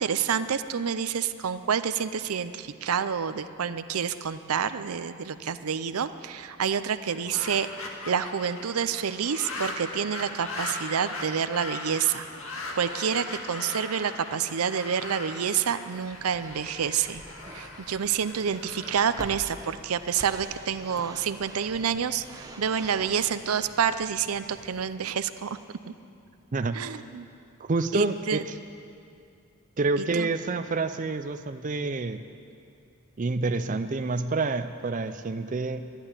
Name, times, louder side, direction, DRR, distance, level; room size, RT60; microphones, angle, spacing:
voice 1, 0.0-17.2 17.5-25.6 25.9-26.0 26.7-27.3 27.9-28.4 30.0-30.3, right 7 dB, 85° right, 12 dB, 0.6 m, -28 dB
sound 1, 7.0-20.2, left 2 dB, 75° left, 1.8 m, -39 dB
sound 2, 15.9-24.9, right 1 dB, 15° right, 0.8 m, -46 dB
voice 2, 26.5-27.0 27.7-28.4 29.8-32.2 33.2-35.9, right 3 dB, 35° right, 9 dB, 0.5 m, -28 dB
12.0 x 11.5 x 9.8 m, 2.5 s
head